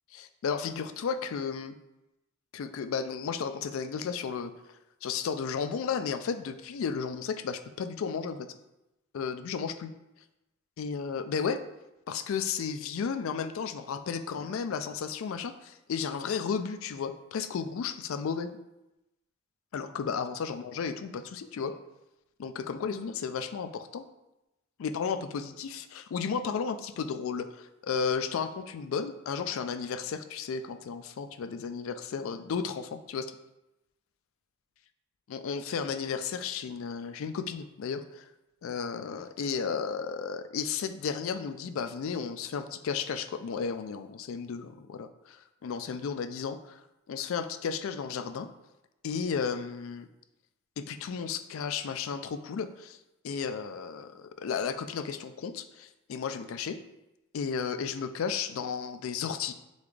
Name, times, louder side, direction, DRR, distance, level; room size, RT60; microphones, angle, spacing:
voice 1, 0.1-1.8 2.5-4.5 5.0-8.5 9.1-9.9 10.8-11.6 12.1-18.5 19.7-21.7 22.4-24.0 24.8-33.3 35.3-38.3 38.6-46.8 47.1-48.5 49.0-50.1 50.8-53.0 53.2-56.8 57.3-59.5, left 6 dB, 65° left, 10 dB, 0.3 m, -33 dB
4.0 x 3.4 x 3.2 m, 0.94 s
head